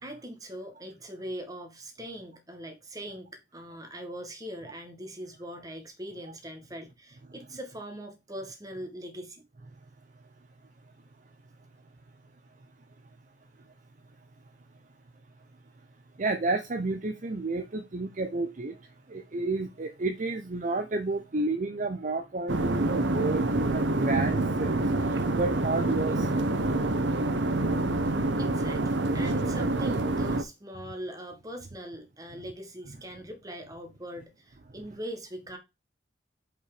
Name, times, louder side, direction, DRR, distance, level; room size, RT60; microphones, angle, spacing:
voice 1, 0.0-9.4 28.4-35.6, equal, 20° right, 1.6 m, -41 dB
voice 2, 16.2-18.8 19.1-26.5, right 3 dB, 45° right, 0.7 m, -31 dB
sound 1, 22.5-30.4, right 2 dB, 75° right, 0.9 m, -27 dB
5.4 x 4.6 x 4.9 m
head